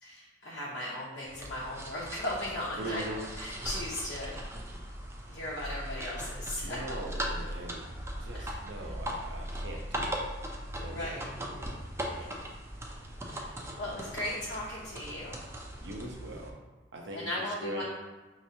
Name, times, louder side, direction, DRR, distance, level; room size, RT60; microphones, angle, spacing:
voice 1, 0.0-4.4 5.3-6.8 8.3-8.9 10.8-11.3 12.0-12.4 13.3-15.5 17.1-17.8, left 1 dB, 85° left, -7 dB, 0.8 m, -37 dB
sound 1, 1.2-16.5, equal, 15° right, 0.4 m, -39 dB
voice 2, 2.8-3.2 6.6-7.9 8.2-10.2 10.8-11.7 15.8-16.5 16.9-17.8, right 1 dB, 75° right, 1 dB, 0.7 m, -41 dB
5.1 x 3.0 x 2.7 m, 1.3 s
head